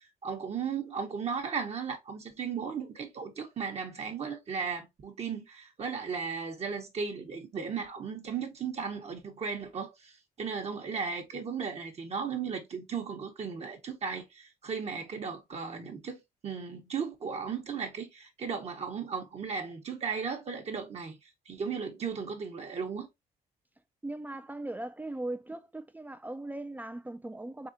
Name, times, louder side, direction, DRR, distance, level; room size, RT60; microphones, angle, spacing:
voice 1, 0.0-23.1, right 6 dB, 45° right, 0.9 m, -36 dB
voice 2, 24.0-27.7, right 2 dB, 10° right, 0.3 m, -39 dB
3.6 x 3.4 x 2.5 m
cardioid pair, 90°, 15 cm